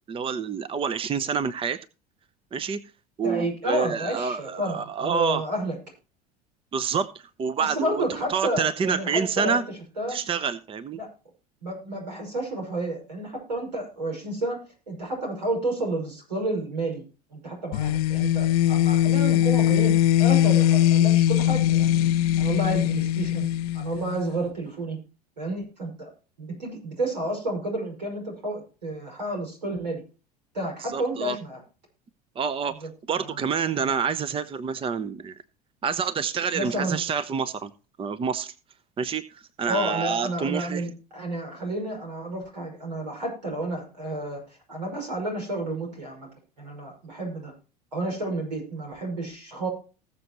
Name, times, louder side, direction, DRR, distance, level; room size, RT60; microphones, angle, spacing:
voice 1, 0.1-1.8 2.5-2.8 3.2-5.4 6.7-8.0 8.3-9.6 10.1-11.0 30.9-31.4 32.4-35.3 35.8-37.7 38.0-38.5 39.0-40.9, right 6 dB, 25° right, 15 dB, 0.8 m, -27 dB
voice 2, 3.2-5.8 7.6-9.6 10.0-10.2 11.0-11.1 11.6-14.6 14.9-17.0 17.3-22.1 22.4-23.5 23.7-25.0 25.4-26.1 26.4-30.0 30.5-31.6 32.8-32.9 33.1-33.9 36.5-37.0 39.7-46.3 46.6-47.5 47.9-49.7, right 1 dB, 85° right, 1 dB, 5.9 m, -31 dB
sound 1, 17.7-24.4, left 12 dB, 65° left, 0.6 m, -21 dB
20.0 x 6.9 x 3.0 m, 0.34 s
figure-of-eight pair, 75°, 21 cm